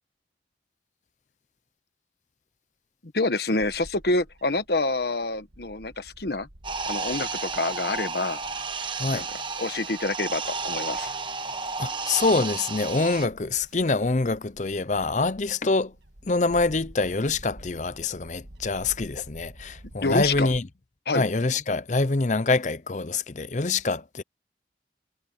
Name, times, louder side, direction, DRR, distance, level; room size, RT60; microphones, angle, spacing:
voice 1, 3.1-6.5 6.9-8.4 9.1-9.2 9.6-11.1 20.0-20.5 21.1-21.2, left 2 dB, 60° left, 1.4 m, -27 dB
Bird / Wind, 3.6-20.6, right 1 dB, 70° right, 1.8 m, -50 dB
sound 1, 6.6-13.3, right 4 dB, 25° right, 1.1 m, -32 dB
voice 2, 11.8-15.9 16.3-20.7 21.1-24.2, left 3 dB, 40° left, 0.7 m, -25 dB
head